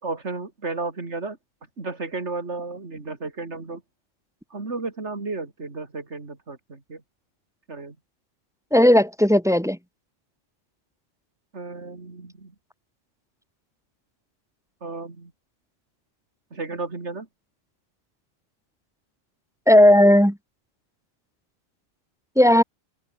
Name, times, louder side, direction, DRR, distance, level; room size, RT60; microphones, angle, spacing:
voice 1, 0.0-1.4 1.8-3.8 4.5-7.0 7.7-8.0 11.5-12.5 14.8-15.3 16.5-17.3, right 3 dB, 60° right, 3.5 m, -33 dB
voice 2, 8.7-9.8 19.7-20.4 22.4-22.6, left 1 dB, 5° right, 0.7 m, -15 dB
omnidirectional pair, 1.3 m